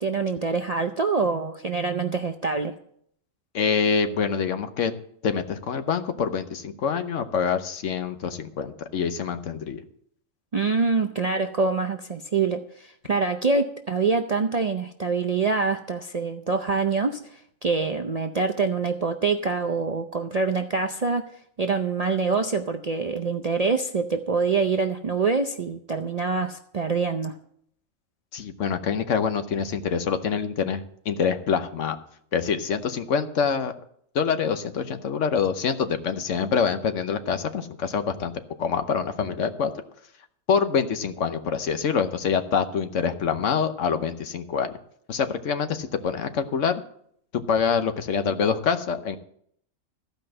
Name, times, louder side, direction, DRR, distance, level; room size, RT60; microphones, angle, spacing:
voice 1, 0.0-2.7 10.5-21.3 21.6-27.3, right 4 dB, 50° right, 5 dB, 0.5 m, -25 dB
voice 2, 3.5-4.9 5.2-9.8 28.3-32.0 32.3-33.7 34.1-38.3 38.6-39.7 40.5-44.7 45.1-46.7 47.3-49.2, left 6 dB, 70° left, 9 dB, 1.2 m, -25 dB
14.5 x 5.3 x 7.6 m, 0.67 s
omnidirectional pair, 1.4 m